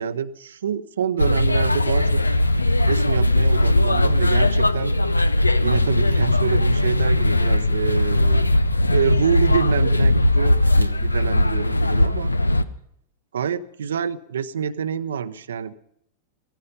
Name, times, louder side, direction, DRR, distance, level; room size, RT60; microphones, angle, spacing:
voice 1, 0.0-2.2 2.8-4.9 5.6-8.5 8.9-12.3 13.3-15.7, right 7 dB, 65° right, 11 dB, 0.7 m, -26 dB
sound 1, 1.2-12.6, left 1 dB, 80° left, 0.7 m, -19 dB
16.0 x 15.0 x 5.4 m, 0.72 s
figure-of-eight pair, 90°, 0 cm